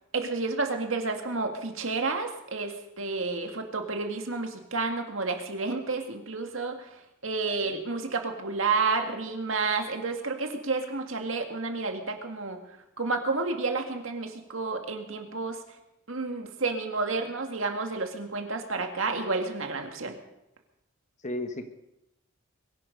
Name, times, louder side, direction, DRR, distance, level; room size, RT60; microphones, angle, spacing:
voice 1, 0.1-6.9 7.2-12.6 13.0-15.6 16.1-20.1, right 3 dB, 70° right, 4 dB, 2.1 m, -30 dB
voice 2, 7.4-7.8 21.2-21.7, left 1 dB, 35° left, 7 dB, 1.4 m, -35 dB
22.5 x 11.0 x 5.3 m, 0.88 s
head